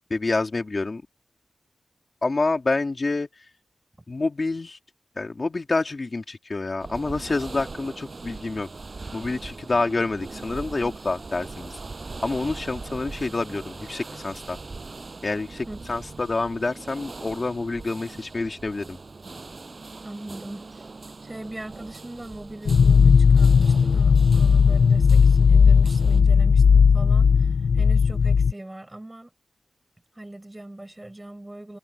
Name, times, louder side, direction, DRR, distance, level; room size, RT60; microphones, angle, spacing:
voice 1, 0.1-1.0 2.2-3.4 4.1-4.8 5.2-8.7 9.1-11.8 12.2-14.6 15.2-19.0, left 3 dB, 40° left, 2.2 m, -27 dB
sound 1, 6.8-26.2, right 3 dB, 45° right, 7.9 m, -41 dB
voice 2, 15.7-16.0 20.0-20.9 21.2-29.3 30.1-31.8, right 1 dB, 15° right, 7.0 m, -40 dB
sound 2, 22.7-28.5, left 6 dB, 80° left, 0.3 m, -16 dB
wide cardioid pair, 100°, 0 cm